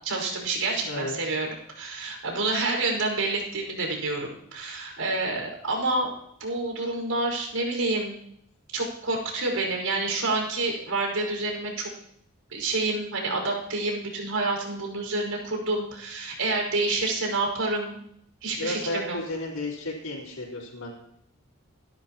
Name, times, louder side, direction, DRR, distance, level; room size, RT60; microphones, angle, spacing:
voice 1, 0.0-6.1 6.4-8.1 8.7-11.9 12.5-18.0 18.4-19.2, right 2 dB, 90° right, 0 dB, 5.3 m, -28 dB
voice 2, 18.6-20.9, left 2 dB, 90° left, -9 dB, 4.6 m, -33 dB
27.0 x 12.5 x 3.0 m, 0.70 s
head